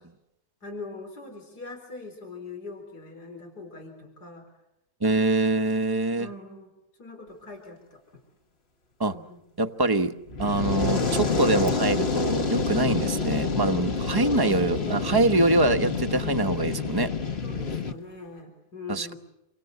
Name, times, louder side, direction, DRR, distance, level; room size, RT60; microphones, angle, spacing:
voice 1, 0.6-4.4 6.2-6.7 7.0-8.0 9.1-9.4 14.2-15.1 16.1-16.7 17.4-19.2, left 3 dB, 90° left, 3 dB, 4.7 m, -41 dB
voice 2, 5.0-6.3 9.0-9.2 9.6-10.1 10.4-17.1 18.9-19.1, right 2 dB, 15° right, 7 dB, 0.9 m, -24 dB
Fire, 10.3-17.9, left 4 dB, 40° left, 1.7 m, -27 dB
28.0 x 24.5 x 8.2 m, 0.85 s
omnidirectional pair, 1.7 m